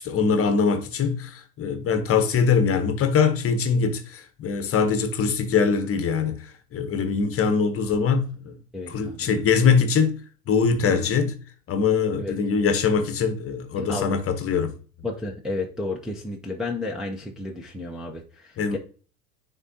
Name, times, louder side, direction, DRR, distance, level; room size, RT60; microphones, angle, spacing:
voice 1, 0.0-8.6 8.9-10.2 10.5-11.3 11.7-14.7 18.6-18.8, left 5 dB, 30° left, 1.0 m, -22 dB
voice 2, 8.7-9.3 12.2-12.4 13.8-14.2 15.0-18.8, left 2 dB, ahead, 0.7 m, -32 dB
9.6 x 3.8 x 2.7 m
hypercardioid pair, 95°, 48 cm